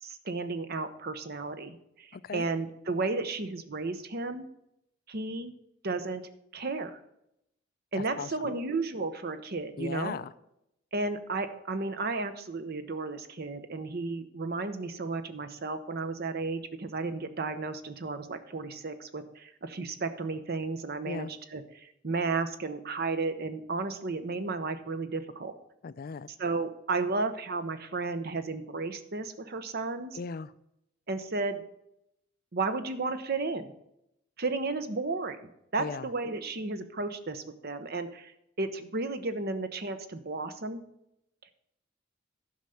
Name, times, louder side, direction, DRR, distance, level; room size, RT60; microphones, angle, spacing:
voice 1, 0.0-4.5 5.1-5.5 5.8-6.2 6.5-7.0 7.9-10.2 10.9-25.5 26.4-30.2 31.1-31.6 32.5-33.7 34.4-38.3 38.6-40.8, right 3 dB, 55° right, 10 dB, 0.9 m, -33 dB
voice 2, 2.1-2.5 7.9-8.5 9.8-10.3 21.0-21.3 25.8-26.3 30.1-30.5 35.8-36.1, left 5 dB, 50° left, 16 dB, 0.4 m, -38 dB
11.5 x 5.7 x 6.5 m, 0.79 s
head